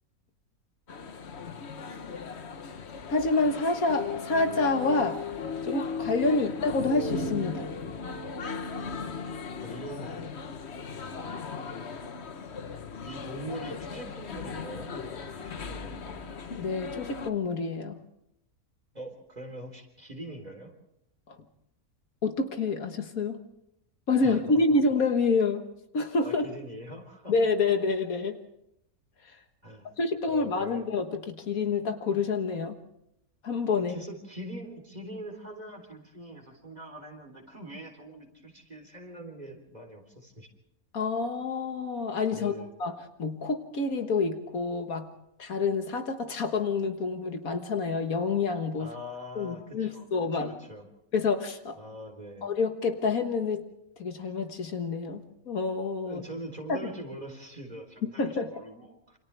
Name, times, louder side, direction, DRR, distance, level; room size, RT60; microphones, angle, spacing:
sound 1, 0.9-17.3, left 5 dB, 50° left, 1.3 m, -37 dB
voice 1, 3.1-5.2 5.6-7.7 16.6-18.0 21.3-21.4 22.2-23.4 24.1-25.6 25.9-26.4 27.3-28.4 30.0-32.8 33.4-34.0 40.9-42.5 42.8-42.9 43.2-45.1 45.4-48.9 49.4-50.5 51.1-51.8 52.4-53.6 54.0-56.2 56.7-56.8 58.2-58.5, left 3 dB, 70° left, 6 dB, 1.9 m, -28 dB
voice 2, 9.6-10.3 10.9-11.1 11.6-11.9 13.1-16.3 18.9-20.7 24.2-24.8 26.2-27.3 29.6-29.9 30.3-30.8 33.9-40.5 42.3-42.7 48.8-50.1 50.3-50.8 51.8-52.5 56.1-59.2, right 1 dB, 25° right, 3 dB, 3.8 m, -43 dB
28.0 x 27.0 x 3.4 m, 0.79 s
omnidirectional pair, 1.6 m